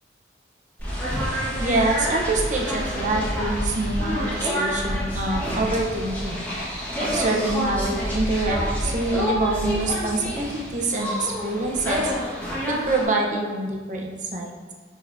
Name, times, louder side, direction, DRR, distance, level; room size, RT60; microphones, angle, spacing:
sound 1, 0.8-13.0, equal, 10° left, 1.5 m, -28 dB
voice 1, 1.6-6.4 7.0-12.1 12.7-14.7, right 2 dB, 45° right, -1 dB, 0.9 m, -26 dB
11.0 x 3.8 x 2.7 m, 1.4 s
head